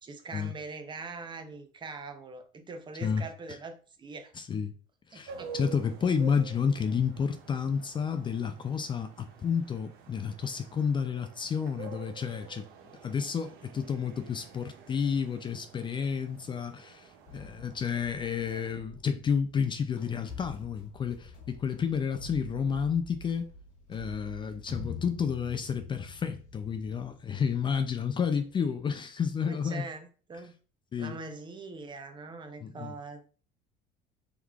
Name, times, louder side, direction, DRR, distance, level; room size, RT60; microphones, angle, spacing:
voice 1, 0.0-4.3 5.1-5.5 18.5-18.6 29.4-30.6 31.0-33.2, right 3 dB, 25° right, 0.6 m, -42 dB
voice 2, 4.4-4.7 5.1-12.7 13.0-23.5 23.9-29.9 30.9-31.2 32.6-32.9, left 6 dB, 30° left, 0.4 m, -31 dB
sound 1, 5.3-18.7, right 6 dB, 65° right, 0.7 m, -49 dB
sound 2, 17.3-28.5, left 4 dB, 70° left, 1.2 m, -46 dB
3.6 x 3.1 x 2.4 m
supercardioid pair, 95°, 17 cm